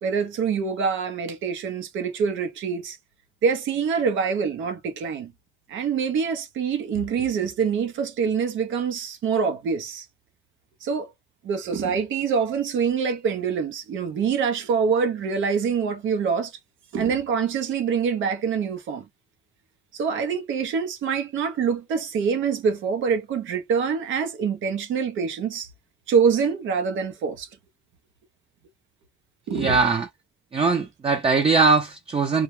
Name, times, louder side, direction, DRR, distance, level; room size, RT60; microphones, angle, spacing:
voice 1, 0.0-3.0 3.4-5.3 5.7-10.1 10.8-11.1 11.4-16.5 16.9-19.0 19.9-25.7 26.1-27.5 29.5-29.8, right 6 dB, 75° right, 0.7 m, -25 dB
voice 2, 29.5-30.1 30.5-32.4, right 4 dB, 30° right, 0.5 m, -21 dB
2.3 x 2.1 x 3.1 m
cardioid pair, 90°, 20 cm